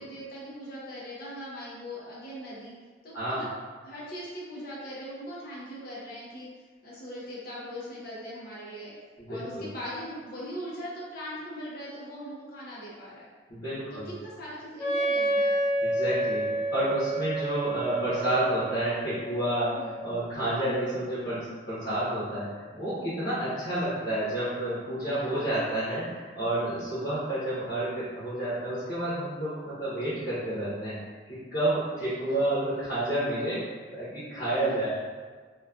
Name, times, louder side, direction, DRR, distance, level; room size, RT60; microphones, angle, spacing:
voice 1, 0.0-2.7 3.0-3.5 3.8-6.5 6.8-8.9 9.3-13.3 13.9-15.5 19.7-20.0 25.0-25.5 32.0-32.5 34.6-34.9, equal, 55° left, -6 dB, 0.6 m, -40 dB
voice 2, 3.1-3.4 9.2-9.7 13.5-14.1 15.8-19.8 20.0-31.0 31.3-34.9, right 1 dB, 85° left, -12 dB, 1.1 m, -30 dB
Wind instrument woodwind instrument, 14.8-20.4, right 1 dB, 10° left, 0.4 m, -30 dB
3.0 x 2.2 x 2.4 m, 1.5 s
head